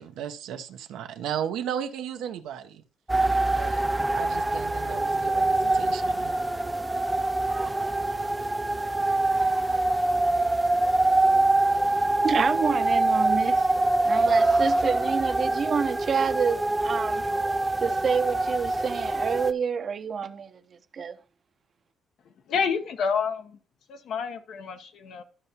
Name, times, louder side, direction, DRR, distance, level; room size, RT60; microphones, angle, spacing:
voice 1, 0.0-2.8 3.5-3.8 4.1-6.3, right 9 dB, 90° right, 0.7 m, -35 dB
sound 1, 3.1-19.5, right 2 dB, 15° right, 0.4 m, -24 dB
voice 2, 11.7-13.7 14.0-17.3 17.8-21.2, right 6 dB, 50° right, 0.7 m, -28 dB
voice 3, 22.5-23.6 23.9-25.2, left 6 dB, 75° left, 0.9 m, -29 dB
12.5 x 5.6 x 2.8 m
cardioid pair, 90°, 0 cm